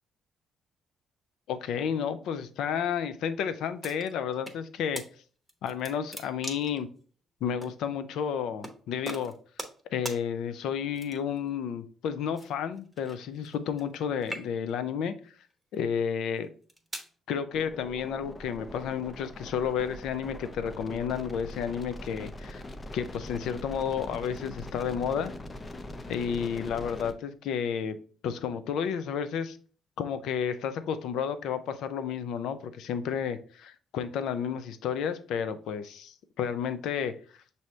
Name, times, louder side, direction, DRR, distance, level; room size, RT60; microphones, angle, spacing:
voice 1, 1.5-5.0 5.6-6.9 7.4-9.3 9.9-15.1 15.7-16.5 17.3-22.6 22.9-25.3 26.1-28.0 28.2-29.6 30.0-37.1, left 7 dB, 85° left, 0.4 m, -31 dB
sound 1, 3.8-4.6 5.0-5.1 5.5-6.8 7.6-7.7 8.6-8.8 9.1-9.8 10.1-10.2 10.9-11.4 12.4-14.0 14.2-14.8 15.5-15.8 16.4-17.1, right 1 dB, 5° right, 0.9 m, -40 dB
sound 2, 17.5-27.1, left 1 dB, 25° left, 0.5 m, -42 dB
6.1 x 2.7 x 3.2 m
cardioid pair, 90°, 0 cm